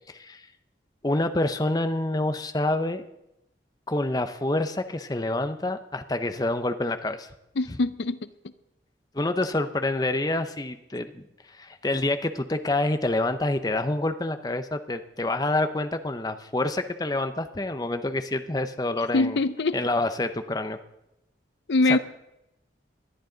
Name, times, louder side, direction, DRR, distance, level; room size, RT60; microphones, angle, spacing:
voice 1, 0.1-0.5 1.0-3.0 3.9-7.3 9.1-19.4 19.7-20.8 21.9-22.0, left 2 dB, 20° left, 8 dB, 0.6 m, -27 dB
voice 2, 7.6-8.3 19.1-19.8 21.7-22.0, left 2 dB, 70° left, 14 dB, 0.5 m, -23 dB
20.0 x 11.5 x 3.9 m, 0.89 s
head